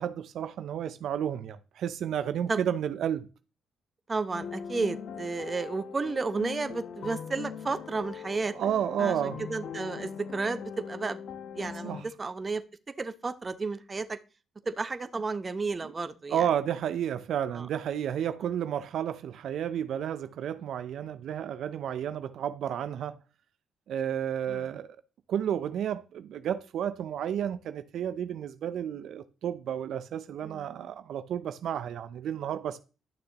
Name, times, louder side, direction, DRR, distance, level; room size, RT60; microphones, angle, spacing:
voice 1, 0.0-3.3 8.5-9.4 11.8-12.0 15.8-15.9 16.3-23.2 23.9-25.0 25.3-32.8, right 9 dB, 70° right, 0.5 m, -31 dB
voice 2, 4.1-8.5 9.0-11.2 11.5-12.6 13.0-14.2 14.7-16.5 17.5-17.7 24.5-24.6 30.4-30.7, right 4 dB, 30° right, 0.8 m, -32 dB
sound 1, 4.3-12.0, left 7 dB, 70° left, 0.9 m, -40 dB
11.5 x 6.6 x 2.9 m
cardioid pair, 90°, 0 cm